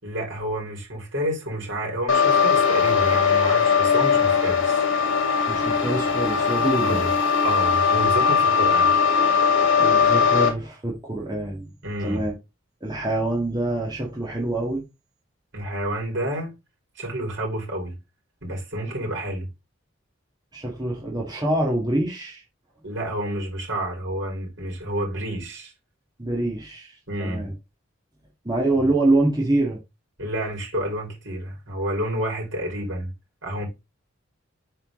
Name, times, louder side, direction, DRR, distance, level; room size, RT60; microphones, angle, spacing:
voice 1, 0.0-4.8 6.8-7.1 7.4-8.9 11.8-12.3 15.5-16.5 17.0-17.9 18.4-19.5 22.8-25.7 27.1-27.5 28.8-28.9 30.2-33.1 33.4-33.7, right 1 dB, 65° right, 4.2 m, -29 dB
sound 1, 2.1-10.5, left 6 dB, 85° left, 2.3 m, -20 dB
voice 2, 5.5-7.1 9.8-11.7 12.0-12.3 12.8-14.8 20.5-22.4 26.2-27.5 28.5-29.8, right 2 dB, 20° right, 1.9 m, -25 dB
8.0 x 4.4 x 3.7 m
head